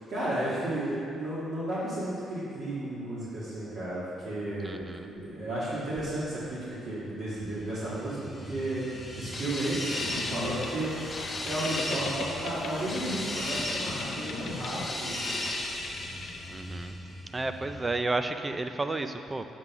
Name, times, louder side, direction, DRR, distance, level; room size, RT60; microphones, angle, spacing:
voice 1, 0.1-8.9 9.2-9.8 10.1-10.9 11.4-15.2, right 1 dB, 55° right, -11 dB, 1.8 m, -33 dB
voice 2, 4.6-5.1 16.5-17.0 17.3-19.5, right 2 dB, 20° right, 8 dB, 0.3 m, -32 dB
sound 1, 7.6-18.0, right 1 dB, 80° right, 1.6 m, -47 dB
sound 2, 8.1-17.2, left 1 dB, 20° left, 1.0 m, -36 dB
Boat Water vehicle, 10.0-16.9, left 4 dB, 55° left, 0.5 m, -41 dB
8.1 x 3.8 x 5.9 m, 2.5 s
cardioid pair, 140°, 0 cm